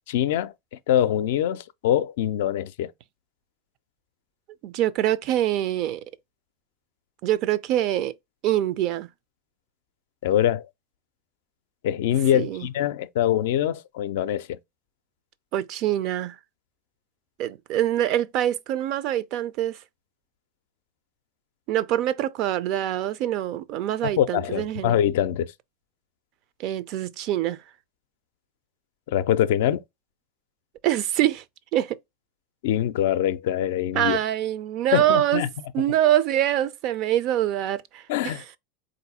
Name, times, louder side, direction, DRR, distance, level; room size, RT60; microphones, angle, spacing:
voice 1, 0.1-0.5 0.9-2.9 10.2-10.7 11.8-14.6 24.2-25.5 29.1-29.8 32.6-34.2 34.9-35.5 38.1-38.4, left 11 dB, 70° left, 0.4 m, -23 dB
voice 2, 4.6-6.0 7.2-8.1 8.4-9.1 12.3-12.7 15.5-16.4 17.4-19.8 21.7-25.0 26.6-27.6 30.8-31.4 31.7-32.0 33.9-35.4 35.7-38.6, right 12 dB, 55° right, 0.4 m, -24 dB
4.0 x 2.6 x 4.0 m
hypercardioid pair, 90°, 0 cm